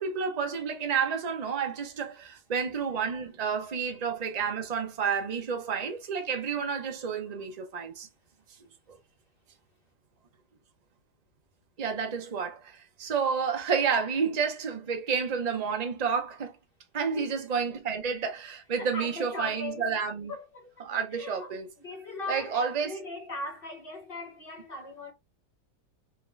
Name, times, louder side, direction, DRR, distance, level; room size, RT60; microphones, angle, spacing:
voice 1, 0.0-8.1 8.9-9.0 11.8-16.5 16.9-20.3 20.8-21.7 22.3-22.9, right 6 dB, 35° right, 0.7 m, -30 dB
voice 2, 17.0-17.4 18.7-19.9 20.3-25.1, left 2 dB, 40° left, 1.0 m, -40 dB
3.7 x 3.5 x 3.3 m
omnidirectional pair, 1.9 m